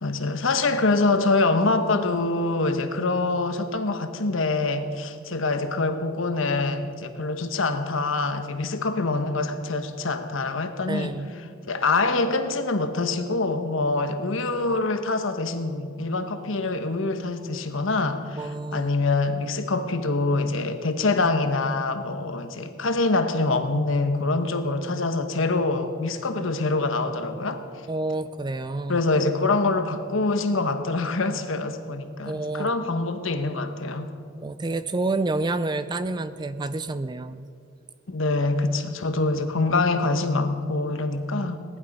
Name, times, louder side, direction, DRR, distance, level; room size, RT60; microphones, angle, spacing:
voice 1, 0.0-11.2 11.7-27.6 28.9-34.1 38.1-41.6, left 3 dB, 65° left, 8 dB, 1.1 m, -25 dB
voice 2, 10.9-11.4 18.4-18.9 27.9-29.0 32.2-33.0 34.4-37.5, right 2 dB, 20° right, 12 dB, 0.4 m, -29 dB
18.5 x 11.5 x 5.4 m, 2.4 s
head